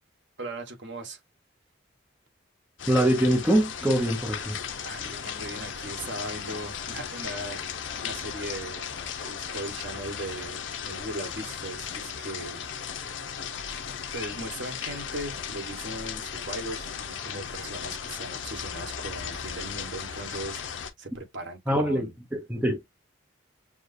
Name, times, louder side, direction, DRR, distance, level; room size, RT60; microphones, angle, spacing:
voice 1, 0.4-1.2 4.8-7.6 8.0-8.9 9.2-12.6 14.1-22.1, right 1 dB, 65° right, 1.4 m, -38 dB
sound 1, 2.8-20.9, left 7 dB, 70° left, 0.7 m, -36 dB
voice 2, 2.9-4.6 21.7-22.8, right 1 dB, 10° right, 0.6 m, -24 dB
6.3 x 2.3 x 2.6 m
head